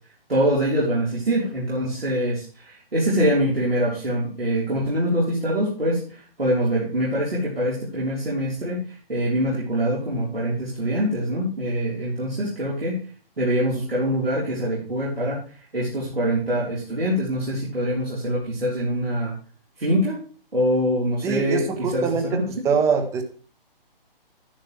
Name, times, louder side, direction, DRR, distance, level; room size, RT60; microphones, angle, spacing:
voice 1, 0.3-13.0 13.4-15.4 15.7-19.3 19.8-20.2 20.5-22.7, equal, 80° right, -6 dB, 4.0 m, -24 dB
voice 2, 21.2-23.2, right 5 dB, 10° right, 7 dB, 0.9 m, -24 dB
12.0 x 10.0 x 3.3 m, 0.40 s
figure-of-eight pair, 135°, 29 cm